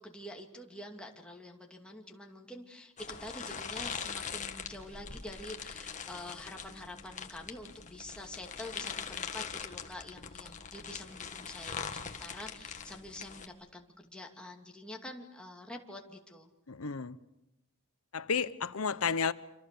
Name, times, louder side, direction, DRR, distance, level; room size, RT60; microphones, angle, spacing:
voice 1, 0.0-16.5, left 1 dB, 5° left, 2.5 m, -47 dB
sound 1, 3.0-13.5, left 6 dB, 35° left, 1.7 m, -42 dB
voice 2, 16.7-17.2 18.1-19.3, left 5 dB, 85° left, 1.0 m, -32 dB
27.0 x 26.5 x 6.9 m
head